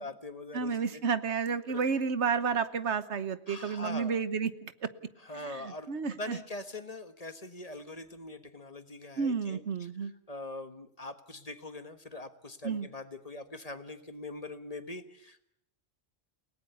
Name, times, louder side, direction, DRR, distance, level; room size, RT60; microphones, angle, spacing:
voice 1, 0.0-1.0 1.7-1.9 3.5-4.2 5.2-9.6 10.3-15.5, left 2 dB, 35° left, 10 dB, 1.5 m, -42 dB
voice 2, 0.5-4.9 5.3-6.4 9.2-10.1 12.6-12.9, right 5 dB, 80° right, 14 dB, 1.4 m, -31 dB
30.0 x 18.0 x 7.0 m, 0.75 s
omnidirectional pair, 1.1 m